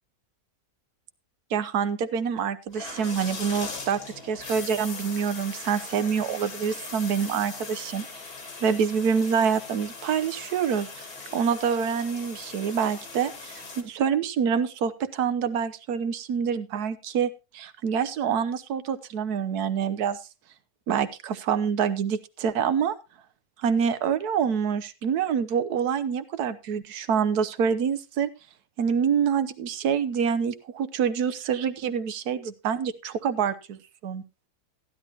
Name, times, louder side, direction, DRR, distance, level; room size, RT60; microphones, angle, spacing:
voice 1, 1.5-8.1 8.6-20.2 20.9-22.9 23.6-28.3 28.8-34.2, right 7 dB, 85° right, 12 dB, 1.4 m, -26 dB
sound 1, 2.7-13.8, left 4 dB, 90° left, 2.5 m, -40 dB
15.0 x 11.0 x 2.8 m, 0.28 s
omnidirectional pair, 1.6 m